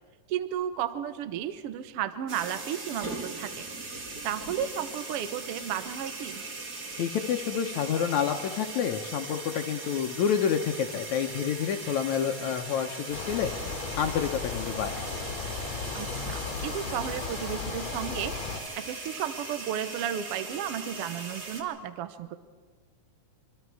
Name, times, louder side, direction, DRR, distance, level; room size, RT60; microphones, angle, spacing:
voice 1, 0.3-3.7 4.2-6.4 15.9-18.3 18.8-22.4, right 10 dB, 85° right, 11 dB, 1.2 m, -33 dB
sound 1, 2.3-21.6, right 3 dB, 35° right, 1.8 m, -39 dB
voice 2, 7.0-13.5 14.0-15.0, left 8 dB, 70° left, 4 dB, 1.9 m, -28 dB
sound 2, 13.1-18.6, left 5 dB, 40° left, 2.5 m, -36 dB
25.5 x 25.0 x 4.7 m, 1.5 s
omnidirectional pair, 4.0 m